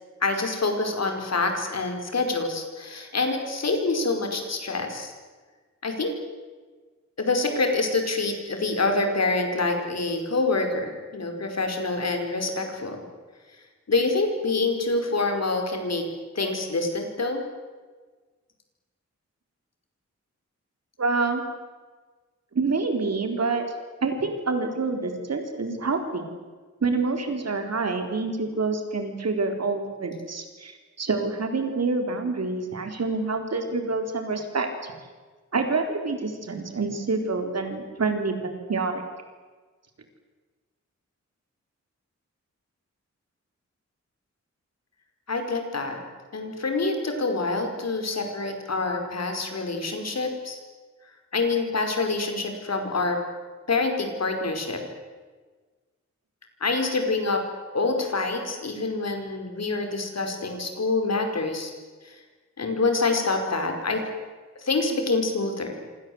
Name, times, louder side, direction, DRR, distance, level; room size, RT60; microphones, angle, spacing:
voice 1, 0.2-5.1 5.8-6.1 7.2-13.0 13.9-16.1 16.3-17.4 45.3-46.0 46.3-50.6 51.3-53.2 53.7-54.8 56.6-57.4 57.7-61.7 62.0-62.1 62.6-64.0 64.5-65.8, left 3 dB, 60° left, 5 dB, 5.1 m, -26 dB
voice 2, 21.0-21.4 22.5-23.6 24.0-26.3 26.8-34.9 35.5-39.0, right 3 dB, 60° right, 5 dB, 4.1 m, -27 dB
27.5 x 26.0 x 8.0 m, 1.4 s
wide cardioid pair, 145°, 29 cm